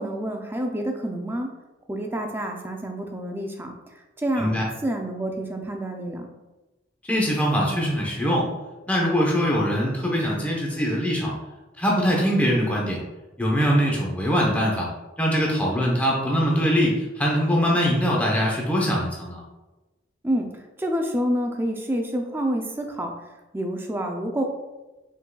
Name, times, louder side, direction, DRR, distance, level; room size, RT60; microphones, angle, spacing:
voice 1, 0.0-1.5 1.9-3.7 4.2-4.6 4.8-6.3 20.2-23.1 23.5-24.4, right 1 dB, 10° right, 3 dB, 0.4 m, -28 dB
voice 2, 7.0-8.5 8.9-11.4 11.8-13.0 13.4-14.9 15.2-19.4, equal, 10° left, -3 dB, 0.8 m, -22 dB
5.3 x 3.9 x 2.3 m, 1.1 s
head